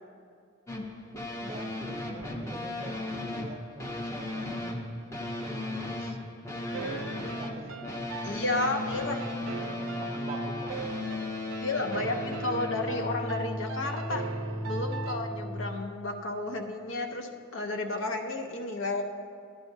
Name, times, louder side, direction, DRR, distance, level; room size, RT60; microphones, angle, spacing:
sound 1, 0.7-15.6, left 1 dB, 15° left, 0.6 m, -36 dB
voice 1, 1.4-4.8 5.2-6.2 7.2-7.8 8.6-8.9 9.2-11.1 11.8-12.1, right 2 dB, 30° right, 5 dB, 0.4 m, -45 dB
voice 2, 6.6-7.3 8.2-9.2 11.6-14.2 14.6-19.0, left 2 dB, 70° left, 5 dB, 0.7 m, -32 dB
sound 2, 6.7-15.6, right 4 dB, 85° right, 0.5 m, -40 dB
11.5 x 10.5 x 2.7 m, 2.2 s
head